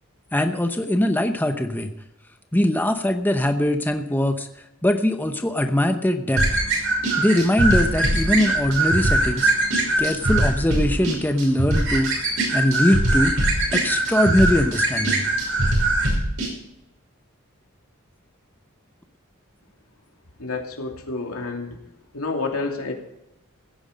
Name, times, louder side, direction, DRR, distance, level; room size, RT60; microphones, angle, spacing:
voice 1, 0.3-1.9 2.5-4.5 4.8-6.4 7.2-9.5 10.0-12.3 12.5-13.4 13.7-15.2, left 1 dB, 10° left, 6 dB, 0.8 m, -21 dB
sound 1, 6.4-16.5, right 2 dB, 65° right, 6.0 m, -21 dB
voice 2, 20.4-21.8 22.1-22.9, left 3 dB, 85° left, 2 dB, 2.7 m, -29 dB
16.5 x 9.7 x 5.1 m, 0.86 s
head